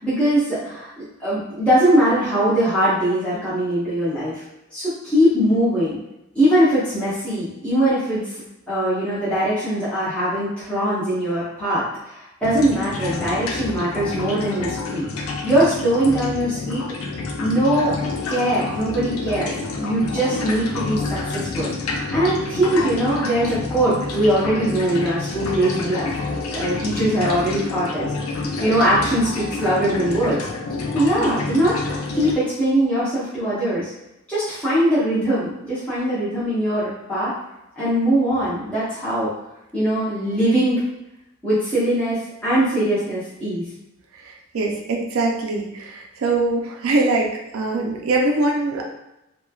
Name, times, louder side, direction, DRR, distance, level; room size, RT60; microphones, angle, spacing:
voice 1, 0.0-4.4 4.7-6.0 6.3-8.4 8.7-15.1 15.4-16.8 17.4-18.0 18.3-26.1 26.5-28.1 28.6-30.4 30.9-31.8 32.1-33.9 34.3-37.3 37.8-39.3 39.7-40.8 41.4-43.6, right 1 dB, 5° left, -12 dB, 0.7 m, -21 dB
sound 1, 12.4-32.4, left 3 dB, 85° left, 0.4 m, -28 dB
voice 2, 44.2-48.8, right 2 dB, 75° right, 0 dB, 0.4 m, -23 dB
3.1 x 2.2 x 2.2 m, 0.89 s
head